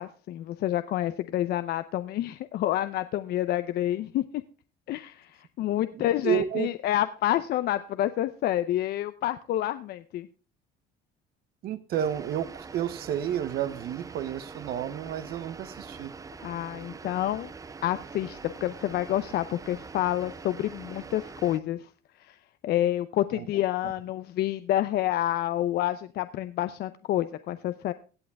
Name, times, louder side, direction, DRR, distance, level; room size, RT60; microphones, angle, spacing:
voice 1, 0.0-4.4 4.9-10.3 16.4-17.5 17.8-21.9 22.2-22.4 22.6-27.9, left 13 dB, 70° left, 12 dB, 0.6 m, -28 dB
voice 2, 5.9-6.7 11.6-16.1 23.3-23.5 23.8-23.9, right 10 dB, 65° right, 13 dB, 0.9 m, -31 dB
sound 1, 11.9-21.6, right 4 dB, 20° right, 0.5 m, -44 dB
16.5 x 8.6 x 3.4 m, 0.37 s
cardioid pair, 110°, 17 cm